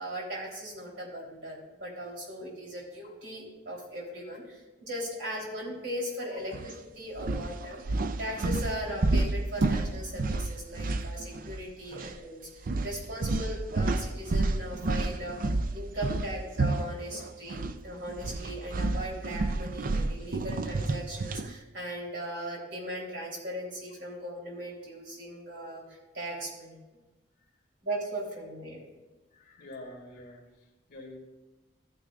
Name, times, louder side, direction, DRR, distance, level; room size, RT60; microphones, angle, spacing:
voice 1, 0.0-12.4 12.8-15.4 15.7-26.7 27.8-28.8, equal, 70° right, -3 dB, 3.7 m, -38 dB
sound 1, 6.5-6.7 7.2-11.7 11.9-12.1 12.7-17.8 18.1-21.5, right 2 dB, 50° right, 0.4 m, -30 dB
voice 2, 29.3-31.2, left 1 dB, 50° left, 1 dB, 2.3 m, -47 dB
14.5 x 9.5 x 2.5 m, 1.2 s
head